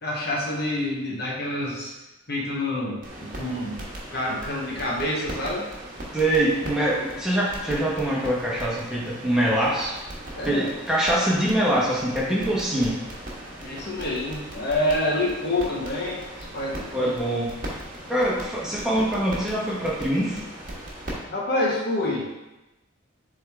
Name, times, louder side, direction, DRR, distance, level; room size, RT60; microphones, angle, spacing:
voice 1, 0.0-1.9 2.3-5.6 10.4-10.6 13.6-17.1 21.3-22.3, left 1 dB, 50° left, -3 dB, 1.0 m, -27 dB
sound 1, 3.0-21.1, right 1 dB, 40° right, 1.3 m, -39 dB
voice 2, 6.1-10.0 10.4-12.9 16.9-17.5 18.1-20.4, right 1 dB, 5° right, -7 dB, 1.3 m, -24 dB
7.4 x 3.7 x 3.4 m, 1.0 s
head